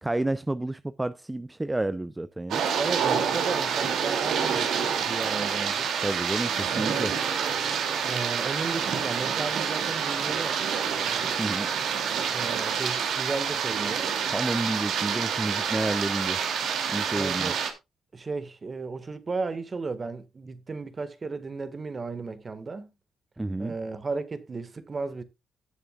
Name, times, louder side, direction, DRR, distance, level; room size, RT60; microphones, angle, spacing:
voice 1, 0.0-2.6 6.0-7.1 11.4-11.7 14.3-16.4 16.9-17.5 23.4-23.7, right 2 dB, 15° right, 0.5 m, -30 dB
sound 1, 2.5-17.7, right 7 dB, 75° right, 2.5 m, -27 dB
voice 2, 2.8-5.9 8.0-10.6 12.3-14.1 17.1-17.6 18.1-22.9 23.6-25.2, right 4 dB, 35° right, 1.6 m, -34 dB
18.0 x 6.9 x 2.3 m
cardioid pair, 90°, 0 cm